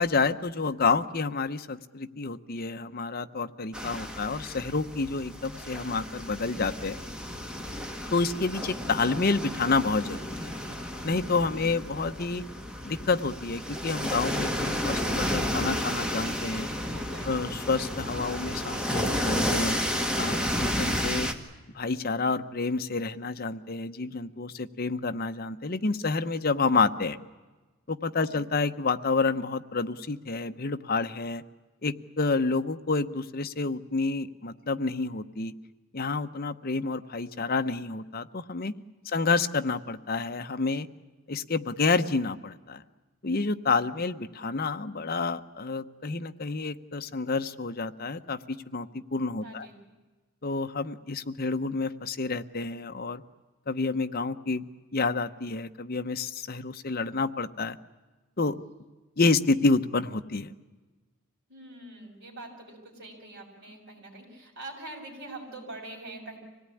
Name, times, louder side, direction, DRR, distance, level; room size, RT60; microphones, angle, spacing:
voice 1, 0.0-7.0 8.1-10.5 11.0-12.4 12.8-16.7 17.3-19.8 20.1-21.3 21.7-27.2 27.9-31.4 31.8-35.5 35.9-38.7 39.1-40.9 41.3-42.8 43.2-49.7 50.4-53.2 53.7-54.6 54.9-57.8 58.4-58.6 59.2-60.5, left 4 dB, 45° left, 9 dB, 0.9 m, -29 dB
sound 1, 3.7-21.3, equal, 5° right, 1.6 m, -32 dB
voice 2, 16.8-17.4 28.2-28.3 39.0-39.2 49.4-49.8 61.5-66.4, right 2 dB, 50° right, -1 dB, 7.2 m, -44 dB
25.5 x 18.0 x 9.9 m, 1.3 s
head